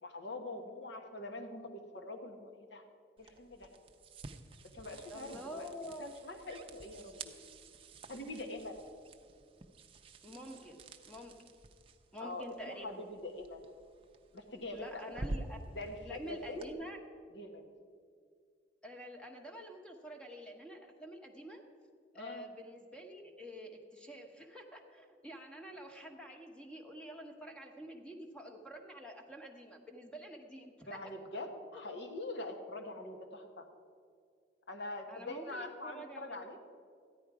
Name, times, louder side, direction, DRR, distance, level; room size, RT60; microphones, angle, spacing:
voice 1, 0.0-2.8 3.2-3.7 4.7-7.3 8.1-8.9 12.2-13.7 14.3-15.2 15.7-16.8 17.3-17.7 22.1-22.5 30.9-33.7 34.7-36.6, left 2 dB, 65° left, 4 dB, 1.3 m, -44 dB
sound 1, 3.2-16.7, right 2 dB, 30° right, 0.6 m, -49 dB
voice 2, 5.1-6.1 10.2-10.8 11.1-11.3 12.1-13.0 14.7-15.6 16.0-17.0 18.8-21.6 22.1-31.0 35.1-36.5, equal, 5° left, 3 dB, 1.1 m, -48 dB
14.0 x 10.5 x 4.9 m, 2.2 s
head